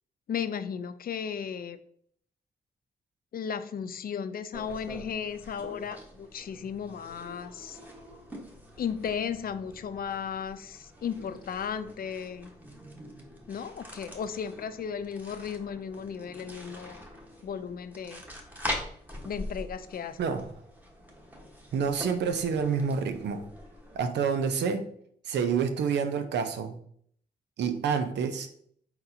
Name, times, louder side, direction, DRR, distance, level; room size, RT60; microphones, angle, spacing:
voice 1, 0.3-1.8 3.3-7.8 8.8-12.5 13.5-17.0 17.4-18.2 19.2-20.2, left 7 dB, 60° left, 12 dB, 0.4 m, -35 dB
sound 1, 4.5-24.0, equal, 10° right, 1.1 m, -44 dB
voice 2, 21.7-23.4 23.9-24.9 25.3-26.8 27.6-28.5, right 6 dB, 85° right, 8 dB, 0.6 m, -28 dB
4.3 x 3.9 x 2.7 m, 0.62 s
cardioid pair, 65°, 17 cm